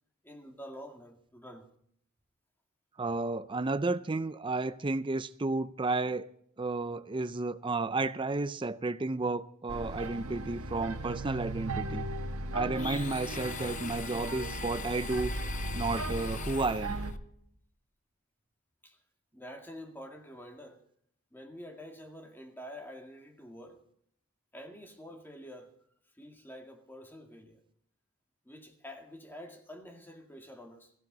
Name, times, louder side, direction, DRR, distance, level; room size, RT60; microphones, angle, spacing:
voice 1, 0.2-1.7 10.8-11.0 18.8-19.0 19.3-20.8 21.3-23.8 24.5-25.7 26.2-27.6 28.5-30.9, equal, 10° left, 2.0 m, -47 dB
voice 2, 3.0-6.3 6.6-12.0 12.5-15.3 15.7-17.0, right 3 dB, 20° right, 0.5 m, -32 dB
sound 1, 9.7-17.1, right 2 dB, 80° right, 1.5 m, -37 dB
Domestic sounds home sounds, 12.7-17.2, left 6 dB, 35° left, 0.7 m, -42 dB
17.5 x 15.5 x 3.9 m
head